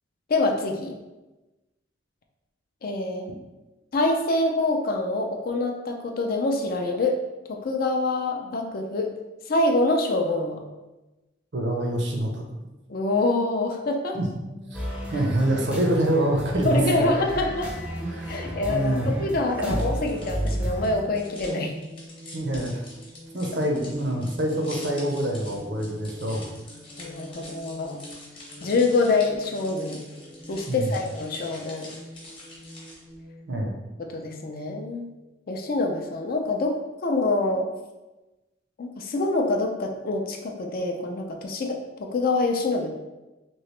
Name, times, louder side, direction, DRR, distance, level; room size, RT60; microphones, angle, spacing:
voice 1, 0.3-1.0 2.8-3.3 3.9-7.2 7.5-9.1 9.5-10.6 12.9-14.2 16.7-17.7 18.3-21.7 27.0-28.0 28.6-30.0 30.5-31.9 34.0-35.1 35.5-36.8 37.0-37.6 38.8-42.9, left 2 dB, 50° left, 2 dB, 0.4 m, -25 dB
voice 2, 11.5-12.4 14.1-14.3 14.7-14.8 15.1-17.3 18.0-19.3 19.6-19.8 22.3-22.8 23.3-26.4 30.7-31.0 33.5-33.7, right 1 dB, 65° right, 1 dB, 0.6 m, -26 dB
sound 1, 14.5-33.7, equal, 70° left, 0.9 m, -46 dB
sound 2, 14.7-21.0, equal, 5° right, 0.5 m, -33 dB
sound 3, 19.8-33.2, left 2 dB, 30° left, 0.9 m, -45 dB
3.1 x 2.8 x 3.1 m, 1.1 s
head